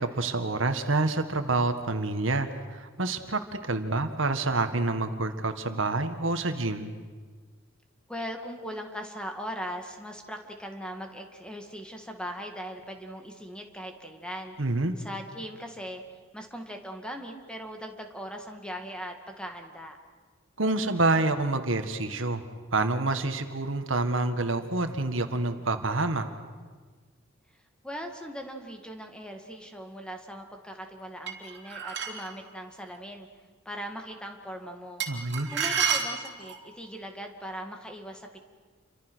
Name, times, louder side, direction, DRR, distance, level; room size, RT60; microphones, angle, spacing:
voice 1, 0.0-6.9 14.6-14.9 20.6-22.4 22.7-26.3 35.1-35.5, right 2 dB, 75° right, 8 dB, 1.7 m, -27 dB
voice 2, 8.1-14.6 15.0-20.0 27.8-33.3 33.7-35.0 35.5-38.4, equal, 5° left, 4 dB, 2.1 m, -39 dB
sound 1, 31.3-32.3 35.0-36.7, right 7 dB, 55° right, 3.2 m, -30 dB
29.0 x 25.0 x 6.3 m, 1.5 s
head